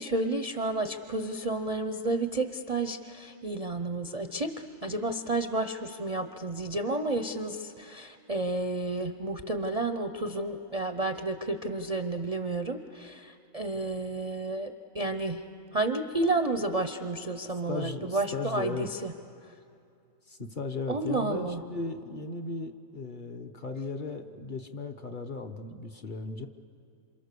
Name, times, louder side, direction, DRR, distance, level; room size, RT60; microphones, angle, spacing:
voice 1, 0.0-15.4 15.7-19.1 19.4-19.5 20.9-21.6, right 2 dB, 35° right, 7 dB, 0.6 m, -31 dB
voice 2, 17.7-18.9 20.3-26.5, left 3 dB, 40° left, 5 dB, 1.0 m, -36 dB
27.5 x 27.0 x 6.8 m, 2.5 s
omnidirectional pair, 1.5 m